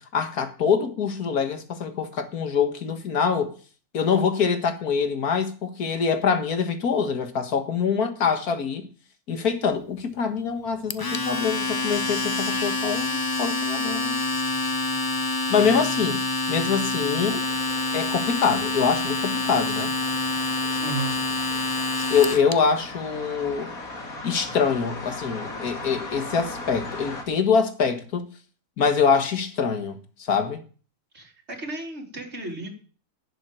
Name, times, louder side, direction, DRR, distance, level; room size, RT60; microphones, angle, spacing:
voice 1, 0.0-3.5 3.9-8.9 9.3-14.2 15.5-17.4 17.9-19.9 22.1-23.7 24.2-28.3 28.8-30.6, left 6 dB, 85° left, 2.1 m, -24 dB
Domestic sounds home sounds, 10.9-22.5, left 2 dB, 35° left, 0.3 m, -27 dB
sound 1, 17.3-27.2, left 2 dB, 70° left, 2.8 m, -38 dB
voice 2, 20.8-21.1 31.1-32.7, right 3 dB, 45° right, 3.6 m, -33 dB
11.5 x 7.7 x 9.1 m
omnidirectional pair, 1.6 m